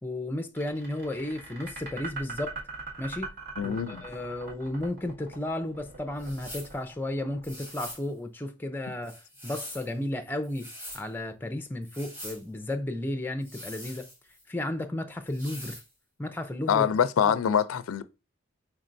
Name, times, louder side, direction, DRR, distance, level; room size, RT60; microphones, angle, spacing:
voice 1, 0.0-2.5 3.0-3.3 3.6-10.7 10.9-14.1 14.5-15.8 16.2-16.9 17.3-17.4, left 1 dB, 10° left, 0.4 m, -33 dB
sound 1, 0.6-7.7, right 3 dB, 50° right, 1.6 m, -41 dB
voice 2, 3.6-4.0 16.7-18.0, left 8 dB, 80° left, 0.4 m, -24 dB
sound 2, 6.2-6.7 7.4-8.1 9.0-9.9 10.4-11.0 11.8-12.4 13.4-14.4 15.3-15.9, equal, 10° right, 1.3 m, -43 dB
4.4 x 4.3 x 2.5 m
head